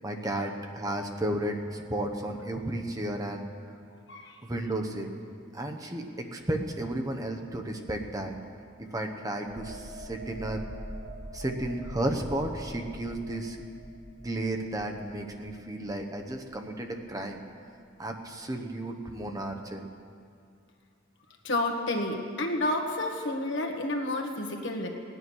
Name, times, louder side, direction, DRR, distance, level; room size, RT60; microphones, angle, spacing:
voice 1, 0.0-3.5 4.4-5.2 5.5-8.3 8.8-10.6 11.3-13.6 14.2-17.4 18.0-19.8, right 1 dB, 20° right, 3 dB, 0.9 m, -33 dB
sound 1, 9.5-16.9 17.3-17.5, equal, 80° right, 3.9 m, -44 dB
voice 2, 21.4-24.9, left 1 dB, 65° left, 3 dB, 1.6 m, -30 dB
18.0 x 9.8 x 6.2 m, 2.3 s
head